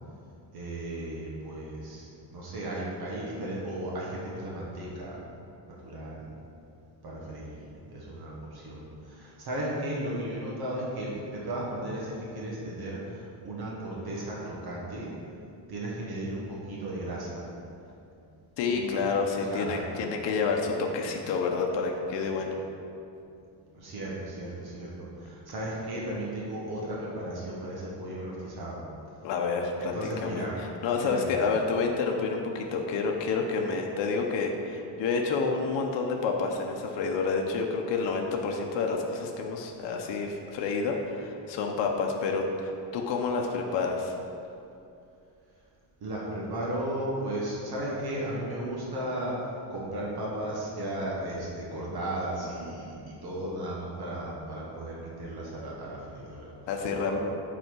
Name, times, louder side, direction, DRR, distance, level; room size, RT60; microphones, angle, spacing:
voice 1, 0.5-5.2 5.7-6.2 7.0-15.1 15.7-17.4 18.7-19.1 19.5-19.9 23.7-28.8 29.8-30.5 30.9-31.4 46.0-56.5 57.0-57.2, right 1 dB, 55° right, -5 dB, 1.5 m, -35 dB
voice 2, 18.6-22.6 29.2-44.1 56.7-57.2, left 4 dB, 70° left, 1 dB, 0.9 m, -29 dB
7.9 x 4.3 x 6.1 m, 2.6 s
cardioid pair, 175°, 44 cm